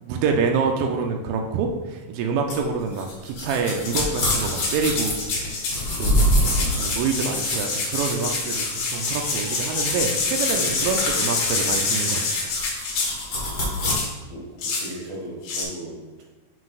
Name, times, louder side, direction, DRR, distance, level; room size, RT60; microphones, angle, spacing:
voice 1, 0.0-5.7 5.9-6.4 6.8-12.5, right 5 dB, 85° right, 3 dB, 2.4 m, -26 dB
sound 1, 2.5-13.9, equal, 50° left, 1.1 m, -27 dB
sound 2, 3.8-5.9 6.3-13.3 13.9-14.1 14.6-14.9 15.4-15.6, left 4 dB, 90° left, 3.1 m, -26 dB
voice 2, 13.2-13.8 14.3-14.5 14.7-16.2, right 1 dB, 50° right, -3 dB, 2.3 m, -38 dB
7.4 x 5.9 x 2.4 m, 1.3 s
omnidirectional pair, 4.0 m